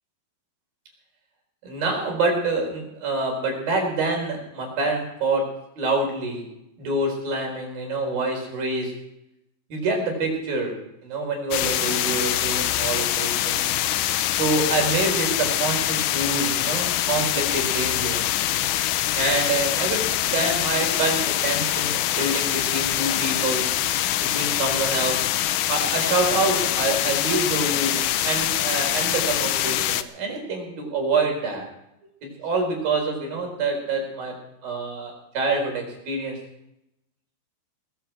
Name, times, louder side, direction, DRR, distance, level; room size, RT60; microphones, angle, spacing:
voice 1, 1.6-5.4 5.7-6.5 6.8-8.9 9.7-10.7 11.0-13.7 14.3-18.2 19.1-20.0 20.3-23.7 24.1-25.2 25.7-31.7 32.2-34.3 34.6-36.4, right 3 dB, 65° right, 2 dB, 6.3 m, -26 dB
sound 1, 11.5-30.0, left 13 dB, 80° left, 1.9 m, -24 dB
20.5 x 15.0 x 4.5 m, 0.83 s
omnidirectional pair, 4.5 m